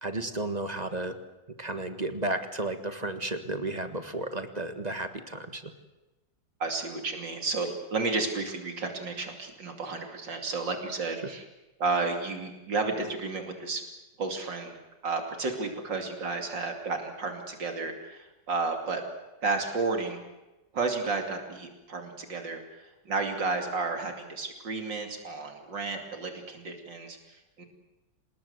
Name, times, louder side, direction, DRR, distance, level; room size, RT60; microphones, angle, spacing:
voice 1, 0.0-1.1 1.6-5.7, right 2 dB, 25° right, 9 dB, 1.5 m, -33 dB
voice 2, 6.6-11.4 11.8-13.8 14.2-14.8 15.0-19.0 19.4-20.2 20.7-27.7, right 3 dB, 75° right, 4 dB, 3.4 m, -32 dB
26.5 x 20.0 x 8.1 m, 1.0 s
omnidirectional pair, 2.0 m